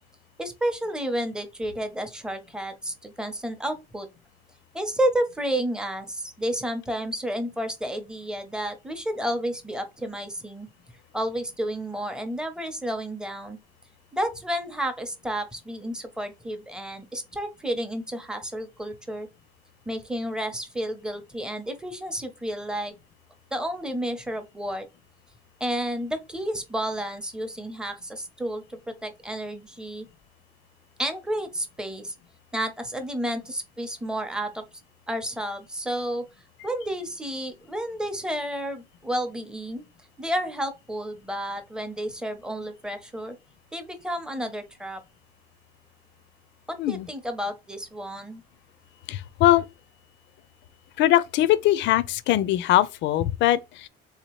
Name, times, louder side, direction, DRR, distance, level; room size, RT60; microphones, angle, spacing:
voice 1, 0.4-4.1 4.7-10.7 11.1-13.6 14.1-19.3 19.9-22.9 23.5-24.9 25.6-30.1 31.0-32.1 32.5-34.6 35.1-36.2 36.6-39.8 40.2-43.4 43.7-45.0 46.7-48.4, right 1 dB, 5° right, 0.6 m, -31 dB
voice 2, 49.1-49.7 51.0-53.9, left 14 dB, 60° left, 0.4 m, -21 dB
3.7 x 2.8 x 3.0 m
cardioid pair, 150°, 21 cm